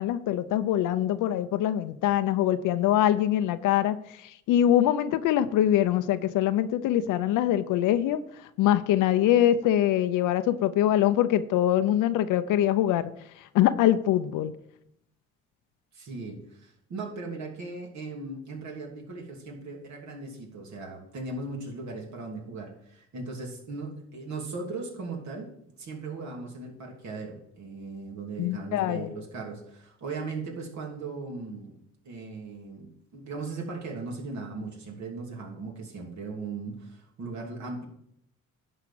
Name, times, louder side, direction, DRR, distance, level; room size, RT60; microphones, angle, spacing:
voice 1, 0.0-4.0 4.5-8.2 8.6-13.1 13.5-14.5 28.4-29.1, left 12 dB, 85° left, 11 dB, 0.6 m, -23 dB
voice 2, 15.9-37.9, right 3 dB, 65° right, 0 dB, 3.0 m, -38 dB
11.0 x 4.9 x 7.5 m, 0.74 s
cardioid pair, 70°, 30 cm